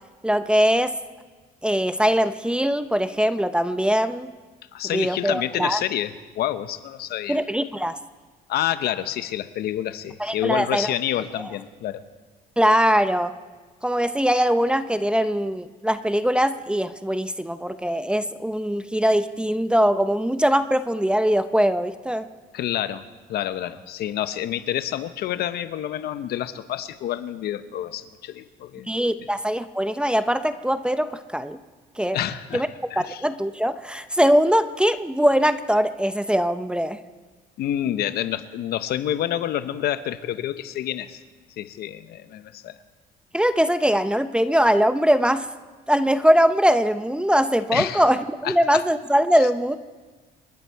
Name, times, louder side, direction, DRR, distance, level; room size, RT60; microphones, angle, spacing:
voice 1, 0.2-1.0 1.6-4.3 4.8-5.8 7.3-8.0 10.2-10.9 11.4-11.5 12.6-13.3 13.8-22.3 28.9-31.6 32.0-32.2 32.5-32.7 33.0-37.0 43.3-45.5 45.9-49.8, equal, 5° right, 11 dB, 0.6 m, -21 dB
voice 2, 4.7-7.4 8.5-12.0 22.5-23.0 23.3-28.9 32.1-32.6 32.9-33.2 37.6-41.2 41.6-42.7 47.7-48.0 48.4-48.5, left 11 dB, 70° left, 12 dB, 0.9 m, -28 dB
27.5 x 11.0 x 4.6 m, 1.3 s
cardioid pair, 110°, 17 cm